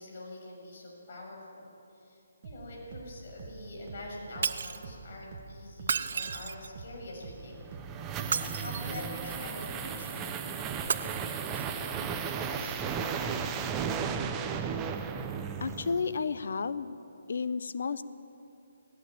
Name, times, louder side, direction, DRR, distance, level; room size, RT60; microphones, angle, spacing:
voice 1, 0.0-1.7 2.0-7.6 8.5-13.7, left 2 dB, 45° left, -2 dB, 6.9 m, -45 dB
sound 1, 2.4-10.1, right 4 dB, 40° right, 1.7 m, -47 dB
Shatter, 4.4-4.9 5.8-6.8 8.2-9.1 10.8-10.9, right 6 dB, 55° right, 0.8 m, -32 dB
sound 2, 7.4-16.3, right 6 dB, 15° right, 0.9 m, -35 dB
voice 2, 15.6-16.9 17.3-18.0, left 5 dB, 65° left, 14 dB, 1.0 m, -32 dB
18.5 x 16.5 x 8.9 m, 2.7 s
hypercardioid pair, 165°, 0 cm